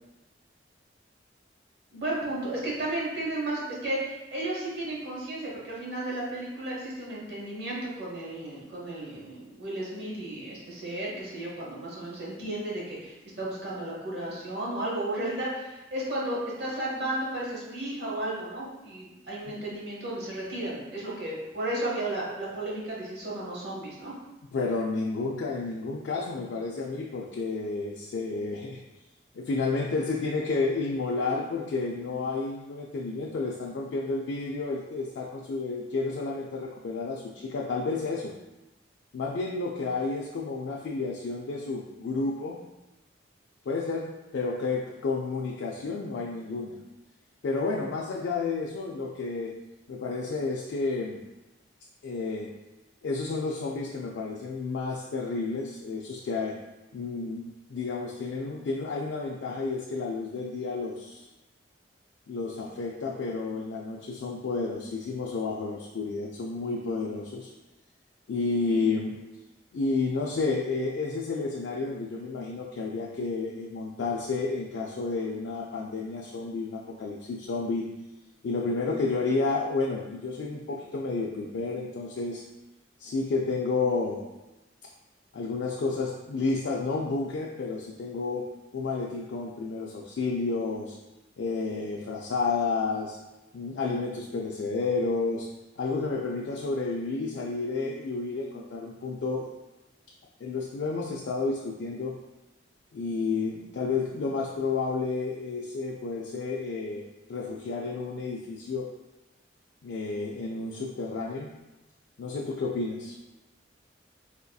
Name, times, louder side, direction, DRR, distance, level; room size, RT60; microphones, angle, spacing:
voice 1, 1.9-24.1, right 1 dB, 60° right, -5 dB, 1.0 m, -33 dB
voice 2, 24.5-28.8 29.3-38.3 39.1-42.6 43.7-44.1 44.3-46.8 47.4-49.5 49.9-51.2 52.0-52.5 53.0-56.6 56.9-61.3 62.3-67.5 68.3-69.2 69.7-77.9 78.4-82.4 83.0-84.2 85.3-88.5 88.7-91.0 91.4-93.2 93.5-95.5 95.8-99.5 100.4-102.2 102.9-107.0 107.3-108.9 109.8-111.5 112.2-113.1, left 3 dB, 80° left, -2 dB, 0.4 m, -31 dB
4.1 x 2.6 x 2.3 m, 1.0 s
head